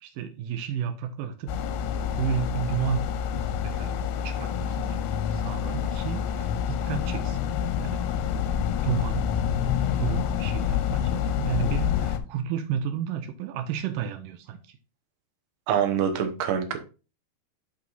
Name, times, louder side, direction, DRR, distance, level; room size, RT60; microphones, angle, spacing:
voice 1, 0.0-1.5 2.1-3.0 3.6-5.0 5.3-7.4 7.8-8.1 8.5-9.3 9.7-14.8, right 8 dB, 85° right, 7 dB, 1.9 m, -32 dB
sound 1, 1.5-12.2, left 8 dB, 90° left, 2.9 m, -27 dB
voice 2, 15.7-16.8, right 8 dB, 70° right, 6 dB, 2.1 m, -25 dB
10.5 x 3.5 x 4.0 m, 0.33 s
omnidirectional pair, 4.7 m